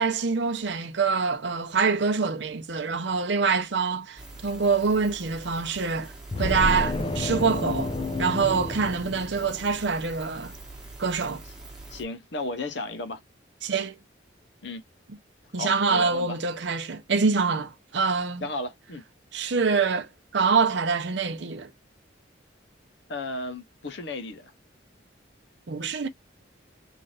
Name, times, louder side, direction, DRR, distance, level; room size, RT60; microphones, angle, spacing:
voice 1, 0.0-6.1 6.4-7.9 8.2-10.5 11.0-11.4 13.6-14.0 15.5-18.5 19.3-21.7 25.7-26.1, right 5 dB, 65° right, 0.7 m, -25 dB
sound 1, 4.2-12.0, right 2 dB, 5° right, 1.0 m, -44 dB
sound 2, 6.3-9.8, left 2 dB, 25° left, 0.4 m, -30 dB
voice 2, 11.9-13.2 14.6-14.8 15.5-16.4 18.4-19.0 23.1-24.5, left 2 dB, 65° left, 0.7 m, -34 dB
3.2 x 2.5 x 3.9 m
head